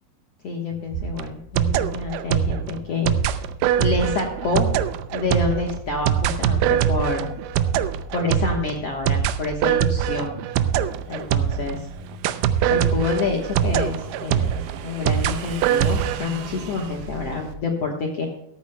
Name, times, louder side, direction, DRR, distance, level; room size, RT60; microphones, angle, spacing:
voice 1, 0.4-3.1 3.8-4.7 5.1-7.2 8.1-10.3 11.1-11.9 12.7-14.5 14.8-18.3, left 4 dB, 60° left, 0 dB, 1.7 m, -27 dB
sound 1, 0.7-17.6, right 1 dB, 40° right, 5.1 m, -42 dB
sound 2, 0.9-11.8 12.2-16.2, right 10 dB, 90° right, 1.9 m, -23 dB
Motorcycle / Engine, 10.5-17.5, right 8 dB, 70° right, 2.3 m, -40 dB
15.5 x 13.5 x 2.3 m, 0.77 s
omnidirectional pair, 4.5 m